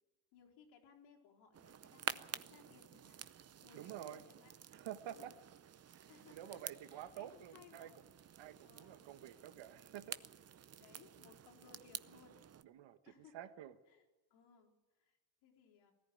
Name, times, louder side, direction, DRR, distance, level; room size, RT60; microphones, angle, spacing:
voice 1, 0.3-3.2 3.6-4.5 5.0-5.4 6.1-8.0 8.6-9.1 10.8-12.4 13.0-13.5 13.9-14.0 14.3-14.7 15.0-15.9, left 7 dB, 85° left, -2 dB, 4.3 m, -63 dB
sound 1, 1.5-12.6, right 9 dB, 35° right, 0.7 m, -50 dB
voice 2, 3.7-4.2 4.7-5.3 5.9-7.9 8.4-10.2 12.6-13.0 13.3-13.7, right 11 dB, 70° right, 11 dB, 1.4 m, -49 dB
19.5 x 14.0 x 9.4 m, 1.1 s
supercardioid pair, 90°, 47 cm